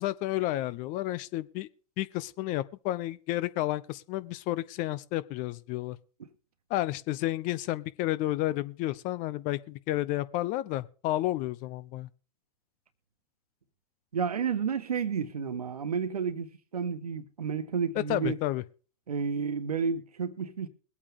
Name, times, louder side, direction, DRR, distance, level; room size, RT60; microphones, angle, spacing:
voice 1, 0.0-1.7 2.0-6.0 6.7-12.1 18.1-18.6, left 15 dB, 45° left, 0.9 m, -31 dB
voice 2, 14.1-18.4 19.1-20.7, right 6 dB, 80° right, 1.5 m, -31 dB
22.0 x 8.6 x 3.5 m
hypercardioid pair, 100°, 19 cm